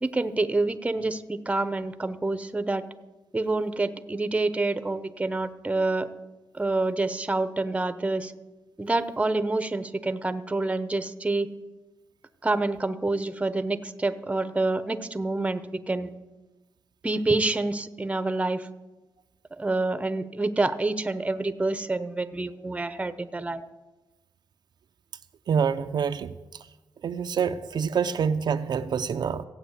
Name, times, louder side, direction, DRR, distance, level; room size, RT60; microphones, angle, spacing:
voice 1, 0.0-2.8 3.3-6.1 6.5-8.3 8.8-11.5 12.4-16.1 17.0-18.7 19.5-23.6, right 2 dB, 15° right, 0.9 m, -27 dB
voice 2, 25.5-26.3 27.0-29.4, right 6 dB, 65° right, 0.6 m, -26 dB
15.5 x 8.7 x 8.3 m
cardioid pair, 105°, 8 cm